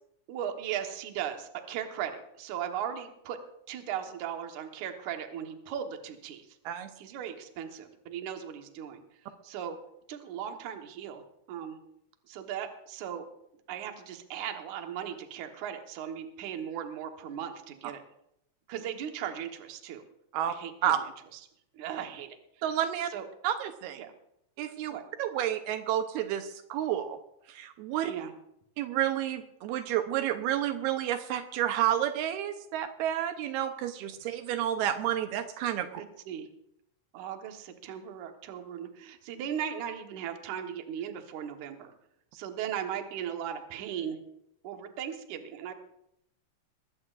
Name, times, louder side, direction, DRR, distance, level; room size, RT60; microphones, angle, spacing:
voice 1, 0.3-3.4 3.7-6.6 7.0-9.8 10.1-11.8 12.3-13.3 13.7-18.0 18.7-20.0 20.4-21.1 21.3-21.4 21.7-22.4 23.1-23.2 24.0-24.1 24.9-25.0 28.1-28.3 36.0-36.5 37.1-41.9 42.3-44.2 44.6-45.7, right 9 dB, 60° right, 5 dB, 2.3 m, -37 dB
voice 2, 22.6-23.1 23.4-24.0 24.6-27.2 27.5-28.1 28.8-36.0, right 11 dB, 80° right, 8 dB, 2.7 m, -30 dB
21.5 x 15.5 x 2.5 m, 0.77 s
omnidirectional pair, 4.5 m